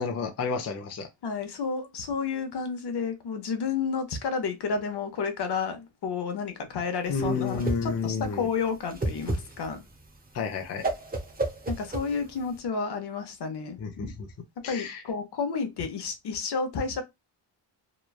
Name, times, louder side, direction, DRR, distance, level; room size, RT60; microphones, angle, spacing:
voice 1, 0.0-1.1 7.1-8.5 10.3-10.8 13.8-14.3 14.6-15.0, left 5 dB, 35° left, 0.5 m, -30 dB
voice 2, 1.2-9.8 11.7-13.8 14.6-17.0, left 5 dB, 60° left, 0.8 m, -31 dB
Whoosh swoosh swish, 7.1-12.6, right 2 dB, 20° right, 0.7 m, -33 dB
3.0 x 2.2 x 2.3 m
cardioid pair, 105°, 45 cm